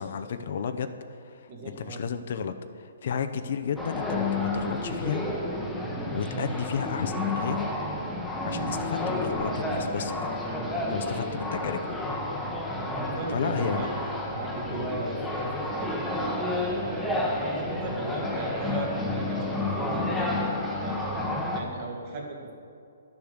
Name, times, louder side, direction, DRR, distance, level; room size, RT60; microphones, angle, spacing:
voice 1, 0.0-5.3 6.1-7.7 8.4-10.3 10.9-12.0 13.3-13.8, left 7 dB, 55° left, 9 dB, 0.7 m, -33 dB
voice 2, 1.5-2.1 13.0-14.0 14.3-20.6 20.8-22.5, right 2 dB, 40° right, 0 dB, 2.2 m, -37 dB
sound 1, 3.8-21.6, left 2 dB, 5° left, 1.1 m, -30 dB
11.5 x 7.0 x 6.5 m, 2.5 s
hypercardioid pair, 155°, 0 cm